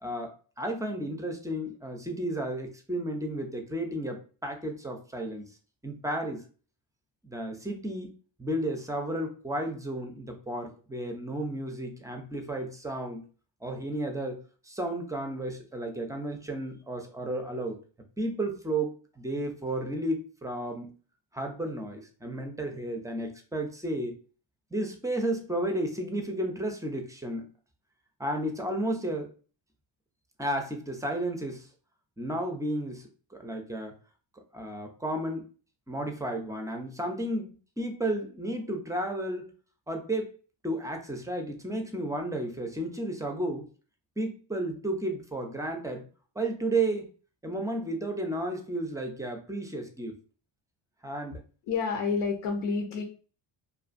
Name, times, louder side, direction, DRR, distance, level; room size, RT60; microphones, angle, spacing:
voice 1, 0.0-5.4 5.8-6.4 7.2-8.1 8.4-13.2 13.6-17.8 18.2-20.9 21.3-24.2 24.7-27.5 28.2-29.3 30.4-31.7 32.2-33.9 34.5-35.4 35.9-39.5 39.9-40.3 40.6-43.7 44.2-46.1 46.4-47.1 47.4-50.1 51.0-51.4, right 1 dB, 5° right, 4 dB, 0.4 m, -33 dB
voice 2, 51.7-53.0, left 5 dB, 80° left, 1 dB, 0.7 m, -29 dB
2.4 x 2.3 x 2.5 m, 0.39 s
cardioid pair, 80°, 49 cm